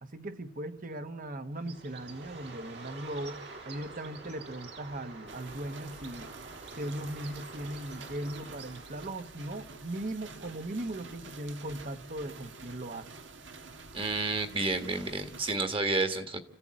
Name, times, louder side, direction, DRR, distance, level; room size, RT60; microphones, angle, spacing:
voice 1, 0.0-6.3 6.8-13.1, right 1 dB, 45° right, 1.1 m, -38 dB
Bird, 1.6-9.3, right 3 dB, 65° right, 3.2 m, -47 dB
sound 1, 5.3-15.5, right 4 dB, 80° right, 1.6 m, -48 dB
voice 2, 13.9-16.4, right 3 dB, 30° right, 1.6 m, -30 dB
29.5 x 15.5 x 8.8 m
head